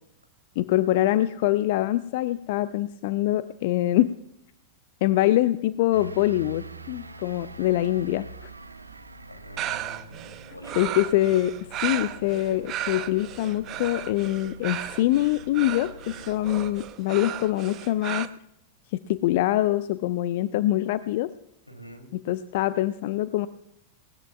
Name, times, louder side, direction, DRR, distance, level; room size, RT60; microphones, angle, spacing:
voice 1, 0.6-4.1 5.0-8.5 10.8-11.5 11.8-18.3 19.1-21.3 22.1-23.5, left 15 dB, 50° left, 15 dB, 0.5 m, -24 dB
sound 1, 5.9-16.9, right 2 dB, 80° right, 1.0 m, -45 dB
voice 2, 9.3-10.8 21.7-22.1, equal, 85° left, 4 dB, 3.1 m, -46 dB
sound 2, 9.6-18.3, right 12 dB, 35° right, 0.8 m, -35 dB
20.0 x 19.5 x 2.4 m, 0.77 s
figure-of-eight pair, 90°, 0 cm